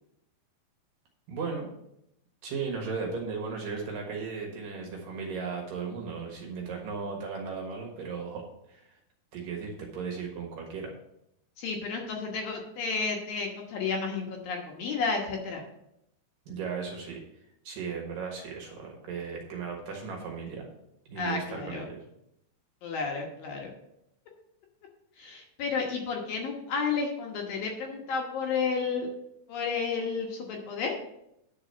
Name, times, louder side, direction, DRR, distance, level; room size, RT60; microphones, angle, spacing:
voice 1, 1.3-1.7 2.4-9.0 9.3-10.9 16.5-17.2 17.6-20.7 21.1-22.0, right 5 dB, 60° right, 0 dB, 2.8 m, -36 dB
voice 2, 11.6-15.6 21.2-21.8 22.8-23.7 25.2-29.1 29.5-30.9, left 5 dB, 65° left, 0 dB, 2.6 m, -32 dB
10.0 x 4.9 x 6.7 m, 0.80 s
omnidirectional pair, 5.0 m